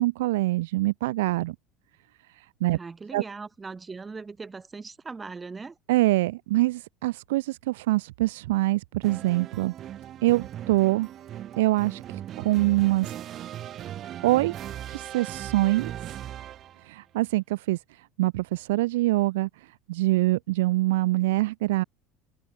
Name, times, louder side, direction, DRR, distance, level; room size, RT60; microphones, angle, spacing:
voice 1, 0.0-1.6 2.4-2.8 3.1-3.2 5.9-9.7 10.2-11.1 11.6-13.1 14.2-14.6 14.9-15.9 16.8-21.8, right 18 dB, 65° right, 0.4 m, -25 dB
voice 2, 2.7-5.8, right 4 dB, 20° right, 7.2 m, -39 dB
sound 1, 9.0-16.9, right 11 dB, 45° right, 5.8 m, -38 dB
figure-of-eight pair, 65°, 0 cm